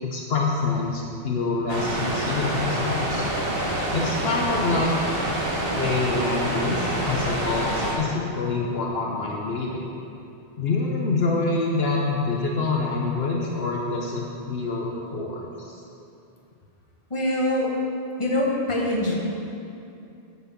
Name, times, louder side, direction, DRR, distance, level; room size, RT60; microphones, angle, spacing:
voice 1, 0.0-3.2 3.9-4.9 5.7-9.9 10.6-15.8, left 3 dB, 65° left, -1 dB, 1.2 m, -26 dB
sound 1, 1.7-7.9, right 1 dB, 60° right, 1.7 m, -27 dB
voice 2, 17.1-17.7 18.2-19.1, left 1 dB, 30° left, -3 dB, 1.6 m, -24 dB
9.6 x 6.1 x 7.2 m, 2.6 s
omnidirectional pair, 1.1 m